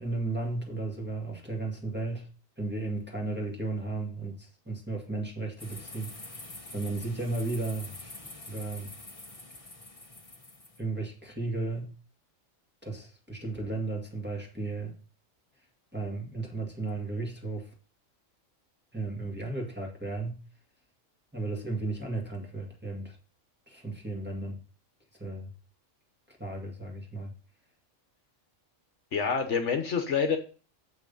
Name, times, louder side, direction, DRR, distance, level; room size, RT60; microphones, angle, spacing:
voice 1, 0.0-2.3 2.6-8.1 8.5-8.9 10.8-11.9 12.8-14.9 15.9-17.7 18.9-20.4 21.3-23.2 23.7-24.6 25.2-25.5 26.3-27.3, right 3 dB, 10° right, 2.0 m, -34 dB
sound 1, 5.6-10.8, left 2 dB, 25° left, 1.6 m, -46 dB
voice 2, 29.1-30.4, left 6 dB, 65° left, 1.3 m, -27 dB
7.6 x 5.9 x 5.4 m
omnidirectional pair, 1.4 m